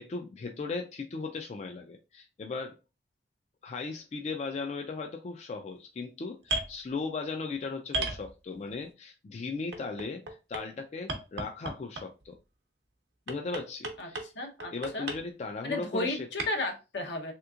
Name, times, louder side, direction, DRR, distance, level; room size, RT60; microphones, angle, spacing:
voice 1, 0.0-2.8 3.6-12.4 13.3-14.3 14.7-16.2, left 4 dB, 40° left, 0.3 m, -37 dB
sound 1, 6.4-6.7 7.9-8.7 9.7-10.6 11.1-12.2 13.3-14.3 14.6-15.2 16.4-16.5, right 2 dB, 75° right, 0.8 m, -33 dB
voice 2, 14.0-15.1 15.6-17.3, left 2 dB, 80° left, 0.8 m, -34 dB
3.4 x 2.9 x 2.3 m
head